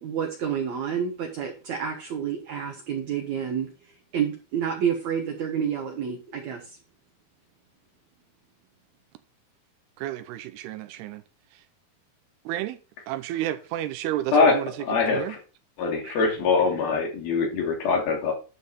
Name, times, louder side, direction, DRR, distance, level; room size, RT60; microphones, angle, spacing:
voice 1, 0.0-3.7 4.1-6.8, right 8 dB, 60° right, 2.1 m, -29 dB
voice 2, 10.0-11.2 12.5-12.8 13.1-14.7 15.1-15.4 16.0-16.2, right 13 dB, 90° right, 2.7 m, -31 dB
voice 3, 14.3-15.4 15.8-18.3, left 4 dB, 65° left, 4.5 m, -23 dB
11.5 x 6.3 x 4.1 m
omnidirectional pair, 4.6 m